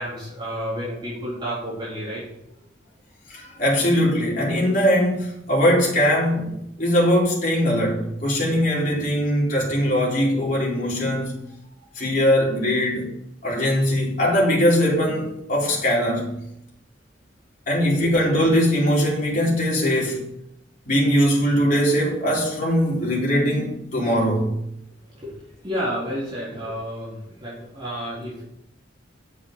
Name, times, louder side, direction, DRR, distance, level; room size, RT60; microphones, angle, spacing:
voice 1, 0.0-2.2 18.0-18.1 25.1-28.4, equal, 25° right, 4.1 m, -31 dB
voice 2, 3.3-11.4 12.0-13.1 13.4-16.4 17.7-20.3 20.9-24.5, equal, 45° left, 4.2 m, -21 dB
8.3 x 7.4 x 8.7 m
head